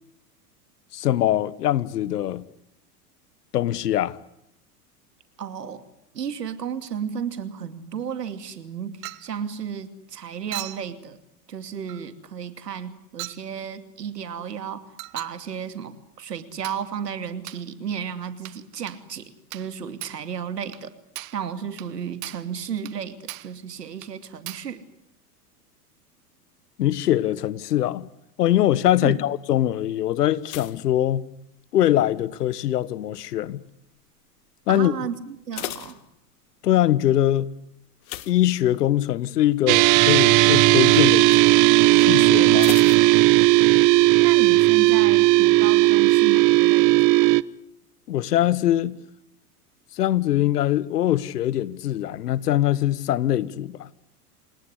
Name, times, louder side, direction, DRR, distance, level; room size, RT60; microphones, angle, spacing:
voice 1, 0.9-2.5 3.5-4.2 26.8-28.1 28.4-31.2 31.7-33.6 34.7-34.9 36.6-37.5 38.3-41.3 41.9-42.7 48.1-49.0 49.9-53.9, left 12 dB, 80° left, 1.5 m, -22 dB
voice 2, 5.4-5.8 6.1-11.2 11.5-20.9 21.3-24.8 29.0-29.2 34.7-36.0 44.2-47.3, right 7 dB, 90° right, 2.7 m, -33 dB
Chink clink, 9.0-9.3 10.5-10.9 11.9-12.1 13.2-13.5 15.0-15.4 16.6-16.9 17.5-17.7 18.5-18.6 18.9-19.0 19.5-19.7 20.0-20.3 20.7-20.9 21.2-21.4 21.8-21.9 22.2-22.5 22.9-23.0 23.3-23.6 24.0-24.1 24.5-24.7, right 20 dB, 60° right, 1.5 m, -38 dB
sound 1, 30.4-32.7 33.3-33.7 33.9-34.0 34.4-34.5 35.2-36.7 38.0-39.1 39.5-39.8 40.1-40.2 42.6-43.8 44.0-44.1, left 17 dB, 60° left, 1.9 m, -38 dB
sound 2, 39.7-47.4, right 20 dB, 40° right, 0.9 m, -16 dB
28.0 x 18.5 x 9.9 m
hypercardioid pair, 100°, 47 cm